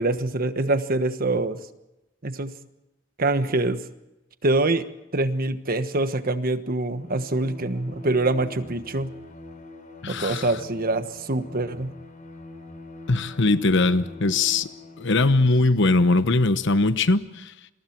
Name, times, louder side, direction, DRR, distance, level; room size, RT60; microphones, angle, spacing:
voice 1, 0.0-1.6 2.2-2.5 3.2-3.8 4.4-4.8 5.1-9.1 10.1-11.9, right 2 dB, 45° right, 1.3 m, -24 dB
Bowed string instrument, 6.8-15.4, left 2 dB, 40° left, 3.8 m, -43 dB
voice 2, 10.0-10.5 13.1-14.7 15.0-17.5, left 2 dB, 65° left, 1.0 m, -21 dB
28.5 x 22.5 x 4.6 m
head